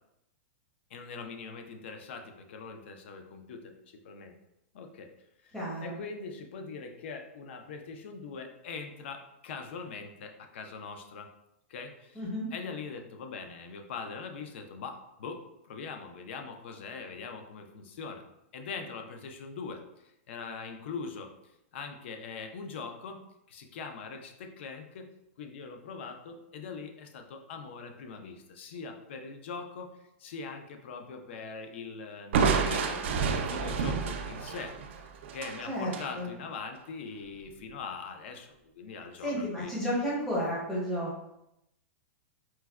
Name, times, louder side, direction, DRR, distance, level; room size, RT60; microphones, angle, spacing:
voice 1, 0.9-4.3 4.7-5.1 5.4-11.3 11.7-12.2 12.5-18.2 18.5-21.3 21.7-23.2 23.5-25.1 25.4-29.9 30.2-34.7 35.3-39.7, left 5 dB, 55° left, 5 dB, 0.4 m, -42 dB
voice 2, 5.5-5.9 12.2-12.5 35.7-36.3 39.2-41.2, equal, 5° left, -7 dB, 0.6 m, -32 dB
Crushing, 32.3-36.1, right 5 dB, 55° right, 0.3 m, -29 dB
4.4 x 2.1 x 2.3 m, 0.84 s
supercardioid pair, 170°, 7 cm